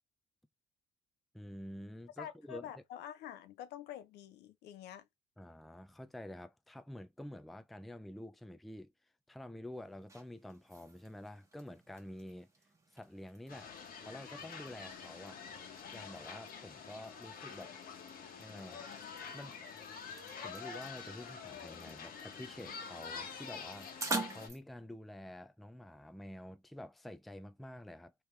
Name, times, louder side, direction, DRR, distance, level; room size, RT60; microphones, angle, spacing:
voice 1, 1.3-2.7 5.4-8.9 9.3-12.5 12.9-13.7 14.0-15.4 15.9-17.8 18.4-18.8 19.3-19.6 20.4-24.0 24.2-28.1, left 1 dB, ahead, 0.4 m, -49 dB
voice 2, 2.2-5.1, left 10 dB, 80° left, 0.7 m, -47 dB
sound 1, 9.7-24.6, right 3 dB, 15° right, 1.2 m, -48 dB
sound 2, 13.5-24.5, left 6 dB, 60° left, 1.2 m, -47 dB
3.3 x 3.0 x 3.2 m
cardioid pair, 110°, 17 cm